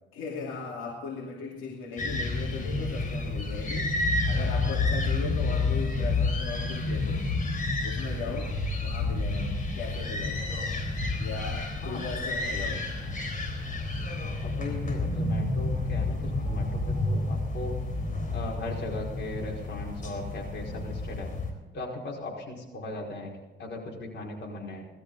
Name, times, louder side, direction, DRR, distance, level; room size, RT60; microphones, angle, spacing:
voice 1, 0.1-3.9 4.2-7.3 7.8-8.6 8.8-10.4 10.8-10.9 11.2-12.8, left 4 dB, 90° left, -2 dB, 2.5 m, -38 dB
sound 1, 2.0-21.5, left 2 dB, 40° left, 3.8 m, -30 dB
voice 2, 11.8-12.3 12.6-12.7 14.4-17.8 18.3-21.3 21.7-24.9, left 2 dB, 60° left, -1 dB, 4.9 m, -38 dB
18.0 x 13.0 x 4.0 m, 1.2 s
cardioid pair, 90°, 20 cm